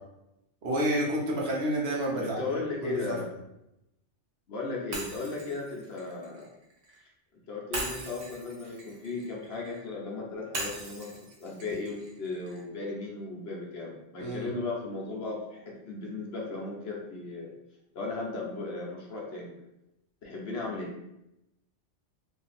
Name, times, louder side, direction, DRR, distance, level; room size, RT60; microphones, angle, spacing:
voice 1, 0.6-2.4 2.8-3.0 14.2-14.5, right 1 dB, 60° right, -3 dB, 1.0 m, -29 dB
voice 2, 2.1-3.3 4.5-6.5 7.5-11.1 11.4-17.5 17.9-19.5 20.2-20.9, left 3 dB, 60° left, -2 dB, 1.0 m, -36 dB
Shatter, 4.9-7.0 7.7-9.8 10.5-12.6, right 2 dB, 85° right, 1.3 m, -40 dB
2.8 x 2.7 x 3.9 m, 0.87 s
omnidirectional pair, 1.2 m